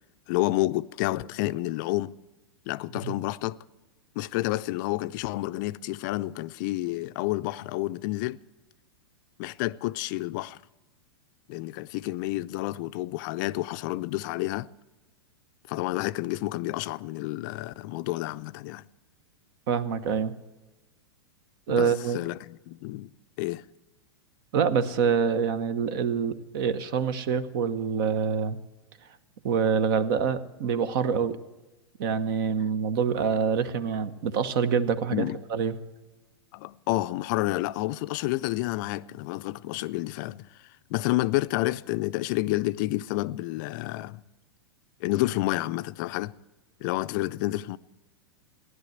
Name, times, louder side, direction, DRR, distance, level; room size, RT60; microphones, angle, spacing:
voice 1, 0.3-2.2 2.7-3.6 4.2-8.4 9.4-10.6 11.5-14.7 15.7-18.8 21.7-23.1 23.4-23.7 35.1-35.4 36.5-40.5 40.9-44.2 45.0-46.3 46.8-47.8, left 18 dB, 45° left, 0.4 m, -29 dB
voice 2, 19.7-20.3 21.7-22.2 24.5-28.6 29.4-31.4 32.0-35.7, right 6 dB, 55° right, 1.1 m, -26 dB
15.5 x 11.0 x 8.0 m
hypercardioid pair, 105°, 14 cm